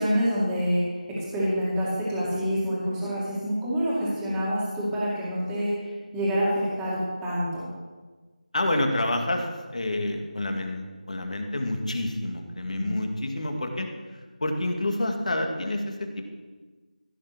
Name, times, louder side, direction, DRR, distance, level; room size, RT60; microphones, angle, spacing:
voice 1, 0.0-7.7 12.7-12.9, equal, 5° right, -8 dB, 2.2 m, -27 dB
voice 2, 8.5-13.9 14.1-16.2, left 1 dB, 55° left, 3 dB, 2.0 m, -28 dB
15.0 x 7.0 x 6.1 m, 1.3 s
figure-of-eight pair, 170°, 5 cm